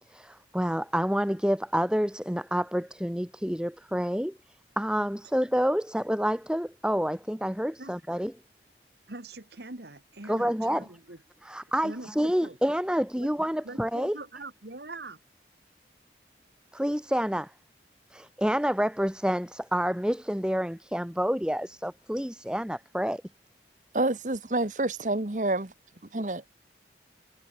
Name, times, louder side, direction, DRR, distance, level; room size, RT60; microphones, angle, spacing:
voice 1, 0.1-4.3 4.7-8.3 10.3-10.9 11.4-14.2 16.7-17.5 18.1-23.2, equal, 5° right, 1.8 m, -28 dB
voice 2, 9.1-11.2 11.8-12.1 12.4-12.6 13.2-13.3 13.6-15.2, right 2 dB, 70° right, 2.2 m, -42 dB
voice 3, 23.9-25.7 26.1-26.4, right 2 dB, 45° right, 1.3 m, -28 dB
head